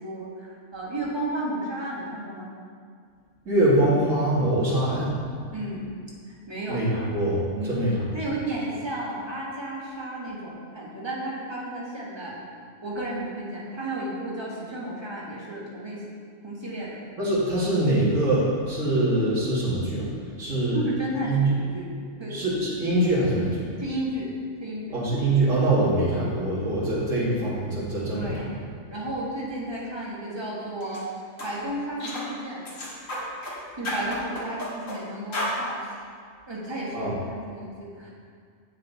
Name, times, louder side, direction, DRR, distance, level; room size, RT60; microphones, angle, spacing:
voice 1, 0.0-2.5 5.5-5.8 6.5-6.8 7.5-7.8 8.1-12.4 12.8-16.0 16.4-17.0 20.7-21.9 22.2-22.4 23.8-24.3 24.6-25.0 28.1-28.5 28.9-31.1 31.4-32.7 33.8-35.9 36.5-38.1, right 1 dB, 20° right, -6 dB, 1.6 m, -33 dB
voice 2, 3.5-5.1 6.7-8.1 17.2-20.1 20.4-20.8 21.2-21.5 22.3-23.7 24.9-28.6 36.9-37.2, right 1 dB, 75° right, -7 dB, 2.5 m, -24 dB
sound 1, 30.8-31.0 31.4-31.5 32.0-32.3 32.6-33.6 33.8-35.0 35.3-35.6, left 1 dB, 80° left, 2.0 m, -32 dB
8.0 x 6.5 x 4.0 m, 2.1 s
omnidirectional pair, 1.4 m